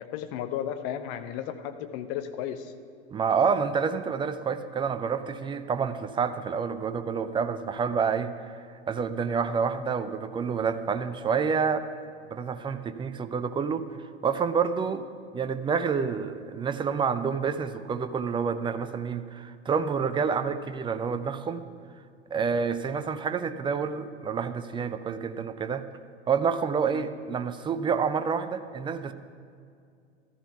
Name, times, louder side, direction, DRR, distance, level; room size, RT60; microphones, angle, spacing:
voice 1, 0.0-2.7 26.9-27.0, left 10 dB, 40° left, 8 dB, 1.0 m, -34 dB
voice 2, 3.1-11.9 12.3-13.9 14.2-15.1 15.3-21.6 22.3-25.9 26.3-29.1, right 6 dB, 15° right, 11 dB, 0.5 m, -28 dB
14.0 x 13.5 x 5.9 m, 2.3 s
figure-of-eight pair, 85°, 34 cm